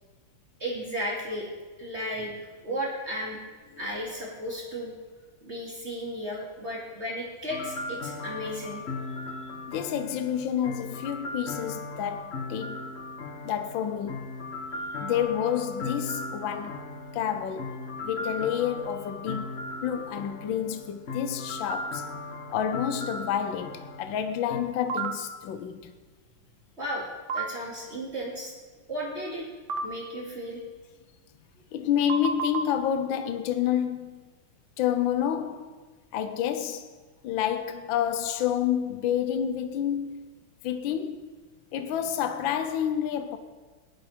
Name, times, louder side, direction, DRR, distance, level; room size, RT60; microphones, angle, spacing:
voice 1, 0.6-1.5 1.8-2.3 2.6-3.4 3.8-4.9 5.4-8.8 26.8-28.5 28.9-29.5 29.8-30.6, equal, 30° right, 2.8 m, -34 dB
background music happy, 7.5-24.6, left 2 dB, 35° left, 1.2 m, -37 dB
voice 2, 9.7-12.9 13.4-14.3 15.0-16.8 17.1-22.1 22.5-25.9 31.7-34.3 34.8-35.8 36.1-36.9 37.2-40.2 40.6-41.2 41.7-43.4, left 9 dB, 70° left, 1.4 m, -29 dB
sound 1, 24.9-25.1 27.3-27.5 29.7-29.9 32.1-32.6, right 5 dB, 70° right, 1.6 m, -29 dB
18.5 x 11.5 x 4.4 m
omnidirectional pair, 2.3 m